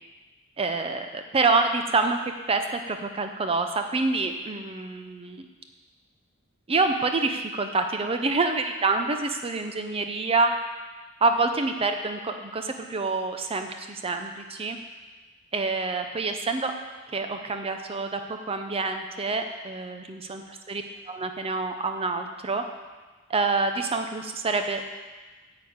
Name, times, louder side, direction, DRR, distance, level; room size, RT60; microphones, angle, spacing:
voice 1, 0.6-2.2 2.5-5.5 6.7-10.5 11.2-14.8 15.5-16.7 17.1-20.4 20.7-22.6 23.3-25.0, right 3 dB, 25° right, 6 dB, 0.5 m, -27 dB
9.4 x 5.2 x 7.9 m, 1.3 s
head